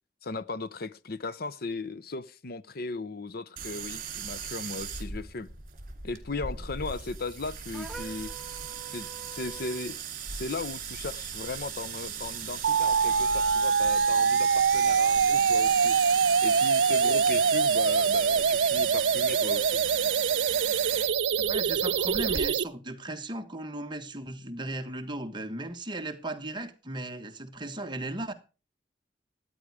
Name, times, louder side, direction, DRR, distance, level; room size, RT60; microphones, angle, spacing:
voice 1, 0.2-5.5 6.0-8.6 8.9-10.0 10.3-19.8, left 3 dB, 60° left, 0.8 m, -37 dB
sound 1, 3.6-22.5, right 8 dB, 50° right, 2.8 m, -37 dB
sound 2, 7.7-9.9, right 5 dB, ahead, 1.5 m, -45 dB
sound 3, 12.6-22.6, right 6 dB, 80° right, 0.5 m, -24 dB
voice 2, 21.5-28.3, right 1 dB, 25° right, 1.4 m, -36 dB
14.0 x 9.6 x 4.8 m
head